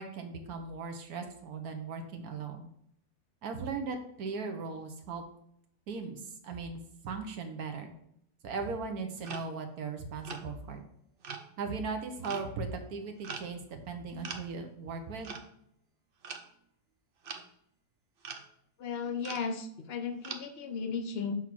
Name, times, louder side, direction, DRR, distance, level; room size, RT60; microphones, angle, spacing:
voice 1, 0.0-2.7 3.4-5.2 5.9-7.9 8.4-10.8 11.6-15.3, right 4 dB, 75° right, 5 dB, 1.4 m, -38 dB
sound 1, 9.2-9.6 10.2-10.5 11.2-11.5 12.2-12.5 13.2-13.5 14.2-14.5 15.2-15.5 16.2-16.5 17.2-17.4 18.2-18.4 19.2-19.5 20.2-20.4, right 5 dB, 55° right, 0.7 m, -42 dB
voice 2, 18.8-21.3, left 5 dB, 55° left, 7 dB, 0.7 m, -35 dB
6.2 x 3.6 x 6.1 m, 0.72 s
omnidirectional pair, 1.6 m